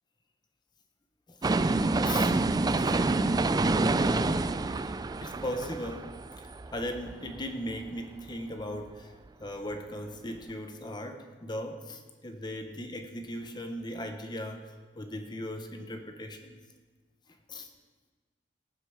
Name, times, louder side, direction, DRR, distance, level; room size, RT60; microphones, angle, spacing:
voice 1, 1.3-1.7 2.0-2.4 2.8-3.0 3.9-4.9 5.2-9.1 9.4-16.6 17.5-17.7, left 1 dB, 25° left, 6 dB, 1.0 m, -38 dB
sound 1, 1.4-7.4 7.8-7.9, right 3 dB, 20° right, 0.3 m, -27 dB
18.0 x 7.7 x 4.8 m, 1.3 s
head